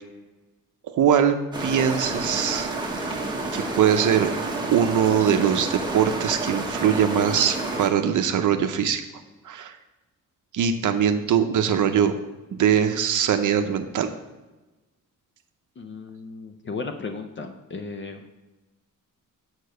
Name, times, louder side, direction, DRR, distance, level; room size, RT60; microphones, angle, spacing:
voice 1, 0.8-2.7 3.5-4.3 4.7-9.0 9.5-9.8 10.5-12.1 12.5-14.1, right 8 dB, 65° right, 7 dB, 0.6 m, -22 dB
sound 1, 1.5-7.9, right 2 dB, 15° right, 0.9 m, -29 dB
voice 2, 15.8-18.4, left 4 dB, 35° left, 6 dB, 0.5 m, -35 dB
6.7 x 4.4 x 6.5 m, 1.1 s
wide cardioid pair, 175°, 34 cm